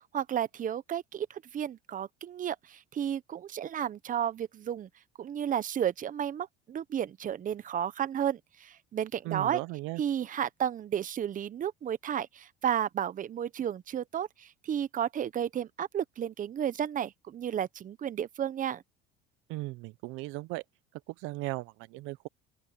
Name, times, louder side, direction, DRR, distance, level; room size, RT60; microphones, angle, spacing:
voice 1, 0.1-4.9 5.2-9.6 10.0-18.8, right 9 dB, 40° right, 1.2 m, -32 dB
voice 2, 9.2-10.0 19.5-20.6 21.1-22.3, right 21 dB, 70° right, 1.0 m, -37 dB
open air
supercardioid pair, 90°, 21 cm